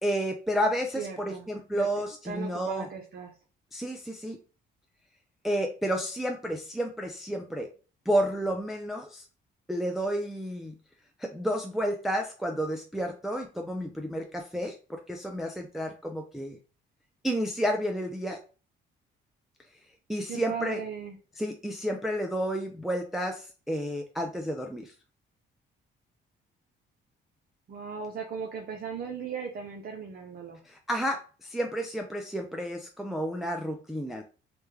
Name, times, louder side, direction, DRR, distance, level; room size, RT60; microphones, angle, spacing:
voice 1, 0.0-2.9 3.7-4.4 5.4-7.7 8.1-9.3 9.7-10.8 11.2-16.6 17.2-18.4 20.1-20.8 21.4-24.9 30.6-34.2, equal, ahead, 3 dB, 0.4 m, -31 dB
voice 2, 1.0-1.5 1.7-1.9 2.3-3.3 20.3-21.2 27.7-30.6, right 6 dB, 50° right, 2 dB, 0.6 m, -37 dB
3.3 x 2.2 x 3.1 m, 0.35 s
cardioid pair, 90°, 20 cm